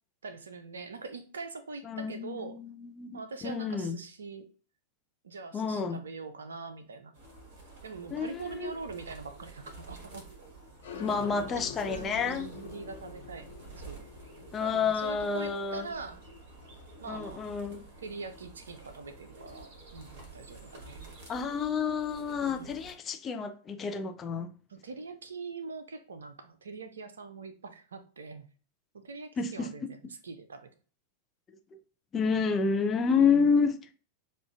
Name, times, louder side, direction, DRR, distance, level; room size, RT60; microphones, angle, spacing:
voice 1, 0.2-2.6 3.1-4.5 5.2-7.1 7.8-10.3 11.3-11.4 11.9-14.1 14.6-16.2 17.0-17.4 18.0-21.1 22.4-22.8 24.7-28.5 28.9-30.7 33.2-33.7, right 4 dB, 70° right, 0.5 m, -43 dB
voice 2, 1.8-4.0 5.5-6.0 8.1-8.7 11.0-12.5 14.5-15.9 17.1-17.9 21.3-24.5 29.4-29.9 32.1-33.8, left 5 dB, 25° left, 0.5 m, -29 dB
sound 1, 7.1-22.9, right 3 dB, 50° right, 1.3 m, -50 dB
sound 2, 10.8-18.1, left 6 dB, 65° left, 1.1 m, -47 dB
6.2 x 2.5 x 2.3 m
figure-of-eight pair, 90°, 0 cm